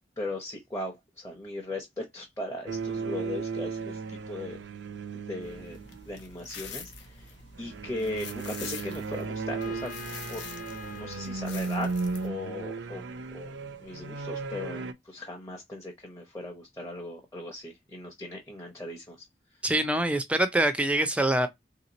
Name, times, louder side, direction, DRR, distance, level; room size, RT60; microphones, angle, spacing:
voice 1, 0.2-4.6 5.1-5.8 6.0-9.9 10.3-10.5 11.0-11.9 12.2-13.0 13.3-13.5 13.8-19.6, left 1 dB, 15° left, 0.8 m, -38 dB
sound 1, 2.7-6.2 7.5-14.9, right 4 dB, 80° right, 0.5 m, -35 dB
sound 2, 5.4-12.3, left 5 dB, 90° left, 0.9 m, -45 dB
Trumpet, 9.6-13.3, left 7 dB, 45° left, 0.5 m, -48 dB
voice 2, 19.6-21.5, right 1 dB, 5° right, 0.4 m, -24 dB
3.6 x 2.9 x 3.8 m
head